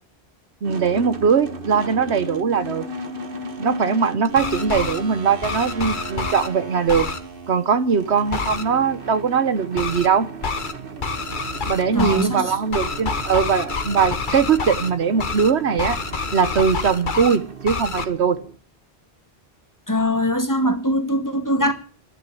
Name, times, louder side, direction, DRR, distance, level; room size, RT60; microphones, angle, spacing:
sound 1, 0.6-18.6, right 2 dB, 55° right, 1.6 m, -36 dB
voice 1, 0.6-2.8 3.6-7.1 7.5-10.3 11.7-16.0 16.3-18.4, right 6 dB, 80° right, 1.3 m, -20 dB
sound 2, 4.2-5.0 5.4-6.5 6.9-7.2 8.3-8.6 9.8-10.1 10.4-10.7 11.0-12.3 12.7-14.9 15.2-15.5 15.8-17.4 17.7-18.0, left 4 dB, 50° left, 1.3 m, -27 dB
voice 2, 11.9-12.5 19.9-21.7, equal, 15° left, 1.7 m, -22 dB
11.5 x 10.5 x 8.5 m
omnidirectional pair, 1.1 m